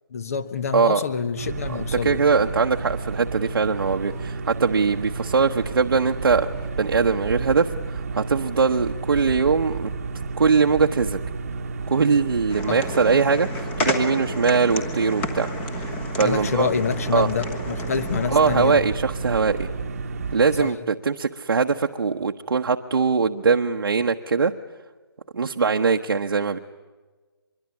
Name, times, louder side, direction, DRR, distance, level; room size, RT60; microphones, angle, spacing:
voice 1, 0.1-2.2 12.7-12.8 16.2-18.8 20.6-20.7, left 6 dB, 35° left, 14 dB, 1.2 m, -27 dB
sound 1, 1.4-20.6, right 4 dB, 35° right, 1.3 m, -32 dB
voice 2, 1.7-6.5 6.8-9.9 10.4-11.2 11.9-15.5 15.7-16.7 17.1-17.3 18.3-19.7 20.3-24.5 25.3-26.6, right 5 dB, 65° right, 3 dB, 1.2 m, -21 dB
sound 2, 12.5-18.7, left 2 dB, 10° left, 1.4 m, -32 dB
24.5 x 22.5 x 9.7 m, 1.3 s
hypercardioid pair, 170°, 13 cm